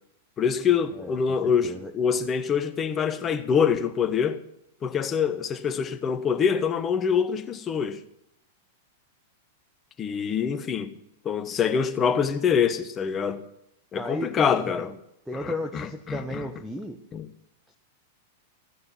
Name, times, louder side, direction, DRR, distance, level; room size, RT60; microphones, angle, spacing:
voice 1, 0.4-4.4 4.8-8.0 10.0-10.9 11.2-13.4 13.9-14.9 15.3-16.4 17.1-17.2, left 7 dB, 25° left, 1.2 m, -25 dB
voice 2, 0.9-1.9 13.9-14.9 15.3-17.0, left 1 dB, ahead, 1.1 m, -34 dB
15.0 x 9.5 x 5.7 m
figure-of-eight pair, 95°, 0 cm